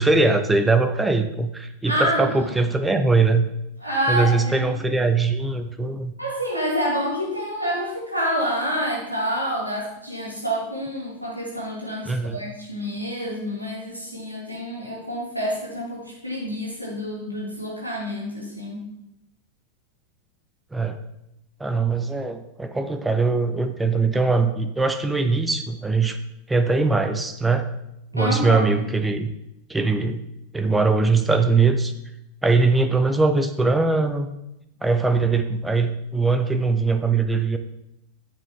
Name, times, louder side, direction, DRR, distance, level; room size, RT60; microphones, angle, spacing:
voice 1, 0.0-3.5 4.1-6.1 12.1-12.4 20.7-21.0 21.6-26.2 26.5-27.7 28.1-29.3 29.7-30.2 30.5-31.9 32.4-34.3 34.8-37.6, right 3 dB, 10° right, 8 dB, 0.8 m, -21 dB
voice 2, 1.8-2.5 3.8-4.7 6.2-18.8 28.1-28.8, equal, 90° right, -4 dB, 2.7 m, -28 dB
9.8 x 7.3 x 3.8 m, 0.83 s
figure-of-eight pair, 90°, 0 cm